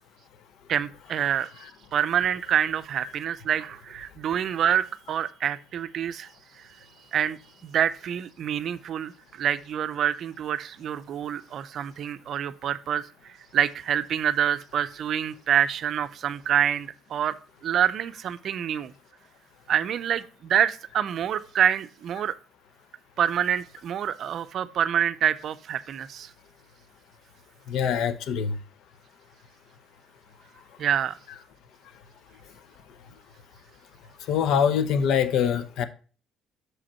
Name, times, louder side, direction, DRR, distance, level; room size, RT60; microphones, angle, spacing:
voice 1, 0.7-6.3 7.1-7.4 7.6-13.1 13.5-17.4 17.6-18.9 19.7-22.4 23.2-26.3 30.8-31.2, right 9 dB, 55° right, 0.5 m, -26 dB
voice 2, 27.7-28.6 34.3-35.9, left 7 dB, 70° left, 0.6 m, -24 dB
6.3 x 5.2 x 4.2 m
cardioid pair, 125°, 0 cm